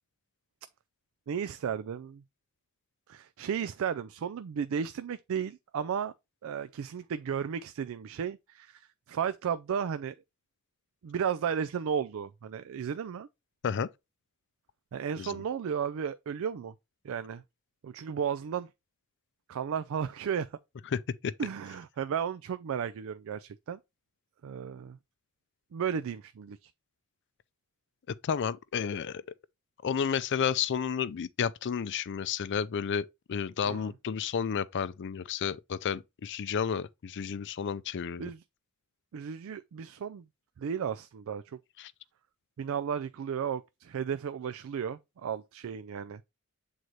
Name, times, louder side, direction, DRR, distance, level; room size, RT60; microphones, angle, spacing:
voice 1, 1.3-2.2 3.1-6.1 6.4-10.1 11.0-13.3 14.9-16.7 17.0-17.4 17.8-18.7 19.5-20.5 21.4-23.8 24.4-25.0 25.7-26.7 33.6-33.9 38.2-38.4 39.1-40.2 40.6-41.6 42.6-46.2, right 7 dB, 65° right, 0.3 m, -34 dB
voice 2, 20.9-21.3 28.2-29.2 29.8-38.3 41.8-41.9, left 7 dB, 55° left, 0.4 m, -31 dB
7.8 x 3.9 x 3.1 m
head